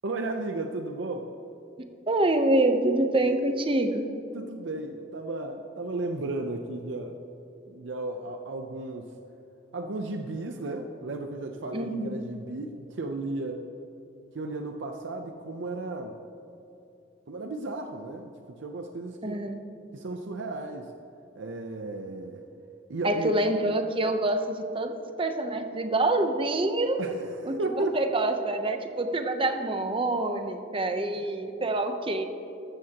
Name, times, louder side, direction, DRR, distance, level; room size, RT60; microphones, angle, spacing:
voice 1, 0.0-1.3 4.3-7.2 7.7-9.1 9.7-13.6 14.3-16.2 17.3-19.4 19.9-20.9 21.4-22.4 22.9-23.3 27.0-27.9 31.2-31.3, right 2 dB, 75° right, 4 dB, 0.6 m, -34 dB
voice 2, 2.1-4.0 11.7-12.2 19.2-19.6 23.0-27.0 27.4-32.2, right 2 dB, 30° right, 7 dB, 0.8 m, -26 dB
14.0 x 12.5 x 2.9 m, 2.9 s
head